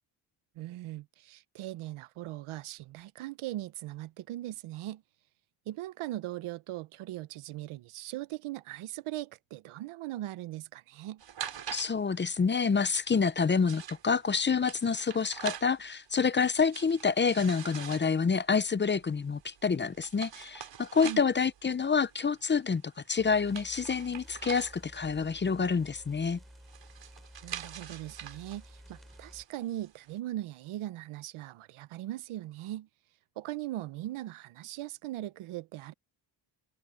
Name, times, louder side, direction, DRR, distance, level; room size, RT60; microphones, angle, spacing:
voice 1, 0.5-5.0 5.7-11.2 21.0-21.2 27.4-32.9 33.4-35.9, right 15 dB, 85° right, 1.0 m, -39 dB
sound 1, 11.2-30.1, right 9 dB, 60° right, 4.5 m, -46 dB
voice 2, 11.7-22.8 23.1-26.4, left 5 dB, 25° left, 0.7 m, -28 dB
sound 2, 23.2-29.5, equal, ahead, 5.2 m, -53 dB
cardioid pair, 110°, 48 cm